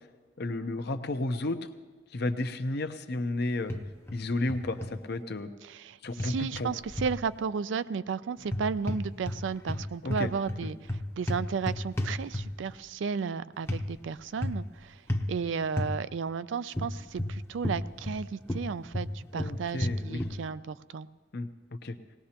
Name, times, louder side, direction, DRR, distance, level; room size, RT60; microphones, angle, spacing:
voice 1, 0.4-1.6 2.1-3.7 4.1-5.5 6.0-6.7 10.0-10.3 10.6-10.7 19.3-20.2 21.3-21.5 21.8-22.0, left 2 dB, 60° left, 7 dB, 0.7 m, -32 dB
sound 1, 3.7-4.2 4.5-4.9 6.2-7.2 8.4-9.4 9.7-12.7 13.7-13.9 14.4-14.7 15.1-15.3 15.8-15.9 16.7-18.2 18.5-20.4, left 1 dB, 15° left, 0.7 m, -32 dB
voice 2, 5.6-15.0 15.3-21.1, right 6 dB, 90° right, 15 dB, 0.4 m, -34 dB
20.0 x 18.0 x 2.9 m, 1.4 s
head